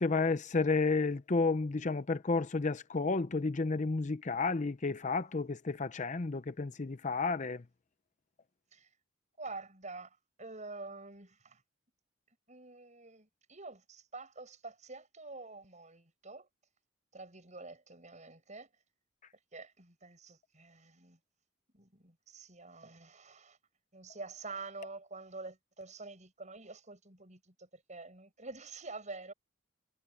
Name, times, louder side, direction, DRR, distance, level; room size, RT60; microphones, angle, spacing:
voice 1, 0.0-7.6, left 3 dB, 35° left, 0.6 m, -31 dB
voice 2, 9.4-10.1 10.4-11.6 12.5-16.5 17.1-18.7 19.5-21.2 21.7-23.6 23.9-29.3, right 3 dB, 35° right, 7.9 m, -47 dB
head